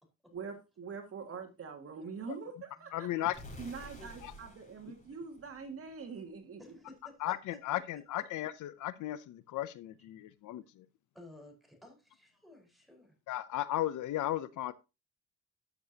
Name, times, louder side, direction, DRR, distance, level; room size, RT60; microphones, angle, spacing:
voice 1, 0.3-3.3 3.6-6.8, right 5 dB, 50° right, 2.0 m, -44 dB
voice 2, 2.9-3.6 4.2-4.3 7.2-10.9 13.3-14.7, left 14 dB, 80° left, 0.7 m, -36 dB
sound 1, 3.3-6.2, equal, 25° left, 4.3 m, -51 dB
voice 3, 6.6-7.3 11.1-13.1, left 1 dB, ahead, 4.6 m, -55 dB
13.0 x 6.9 x 2.8 m
cardioid pair, 90°, 30 cm